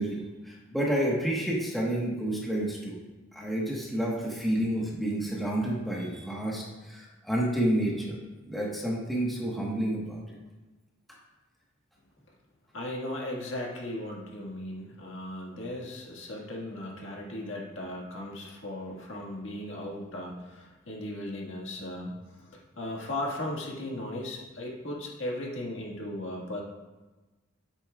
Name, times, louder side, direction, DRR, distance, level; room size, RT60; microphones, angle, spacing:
voice 1, 0.0-3.0 3.3-8.2 8.5-10.2, right 1 dB, ahead, -5 dB, 1.3 m, -29 dB
voice 2, 12.7-26.6, left 1 dB, 65° left, -2 dB, 1.8 m, -37 dB
10.0 x 8.3 x 2.4 m, 1.2 s
head